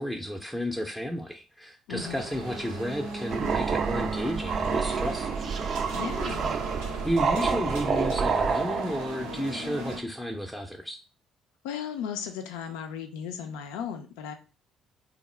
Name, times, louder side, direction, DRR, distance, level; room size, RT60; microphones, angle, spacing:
voice 1, 0.0-5.5 7.0-11.0, equal, 5° left, 1 dB, 0.5 m, -32 dB
voice 2, 1.9-2.2 5.9-6.6 11.6-14.3, left 8 dB, 70° left, 6 dB, 0.4 m, -36 dB
sound 1, 1.9-10.0, right 2 dB, 75° right, 0.7 m, -37 dB
sound 2, 3.3-9.3, right 5 dB, 50° right, 0.3 m, -28 dB
3.6 x 2.0 x 3.1 m, 0.34 s
figure-of-eight pair, 50°, 0 cm